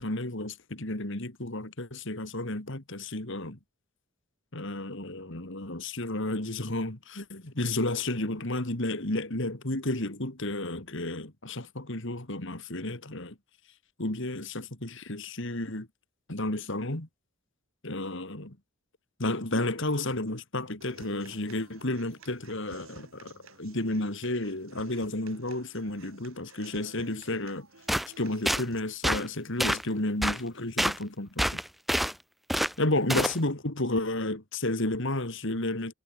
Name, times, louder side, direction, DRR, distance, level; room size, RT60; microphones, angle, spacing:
voice 1, 0.0-3.6 4.5-13.4 14.0-15.9 16.3-17.1 17.8-18.6 19.2-23.3 23.6-27.7 28.2-31.6 32.8-35.9, left 2 dB, 55° left, 2.6 m, -32 dB
Human voice / Acoustic guitar, 20.8-28.8, right 3 dB, 65° right, 5.0 m, -53 dB
sound 1, 27.9-28.1 28.5-28.6 29.0-29.2 29.6-29.8 30.2-30.4 30.8-31.0 31.4-32.1 32.5-32.7 33.1-33.4, equal, ahead, 0.7 m, -26 dB
head